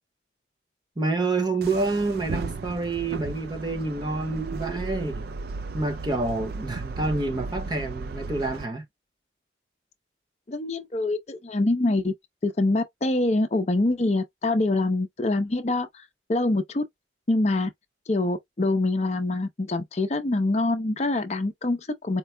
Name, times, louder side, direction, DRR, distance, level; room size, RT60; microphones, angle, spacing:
voice 1, 1.0-5.3 5.7-8.8, right 3 dB, 25° right, 0.8 m, -28 dB
sound 1, 1.6-8.6, right 4 dB, 55° right, 0.3 m, -35 dB
voice 2, 10.5-12.1 12.4-16.0 16.3-16.8 17.3-17.7 18.1-22.2, left 2 dB, 35° left, 0.5 m, -25 dB
4.4 x 2.0 x 3.3 m
head